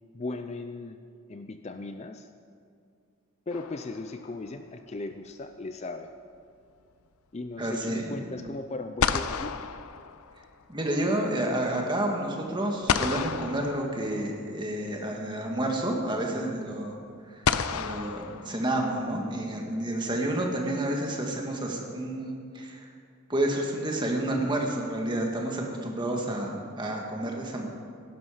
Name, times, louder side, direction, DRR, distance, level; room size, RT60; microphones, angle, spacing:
voice 1, 0.1-1.0 1.3-2.3 3.5-6.1 7.3-9.7, left 2 dB, 30° left, 8 dB, 0.4 m, -37 dB
sound 1, 3.5-4.4 8.5-8.6 9.0-10.7 12.9-14.5 15.8-15.9 17.4-19.1, left 6 dB, 85° left, 0.6 m, -31 dB
voice 2, 7.6-8.0 10.7-17.0 17.3-17.5 17.7-22.9 23.3-27.7, right 1 dB, 20° right, 1 dB, 1.7 m, -30 dB
16.0 x 12.0 x 5.0 m, 2.3 s
head